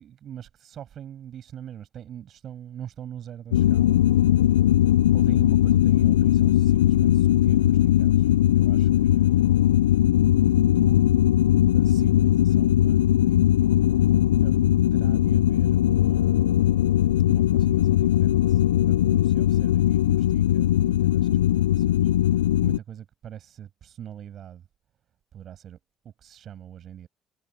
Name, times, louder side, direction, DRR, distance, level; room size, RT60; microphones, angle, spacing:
voice 1, 0.0-4.0 4.3-4.6 5.1-9.7 10.3-11.1 11.4-13.6 13.9-16.7 17.3-24.7 25.3-25.8 26.0-27.1, right 10 dB, 55° right, 6.7 m, -43 dB
sound 1, 3.5-22.8, left 12 dB, 90° left, 0.4 m, -20 dB
hypercardioid pair, 55°, 0 cm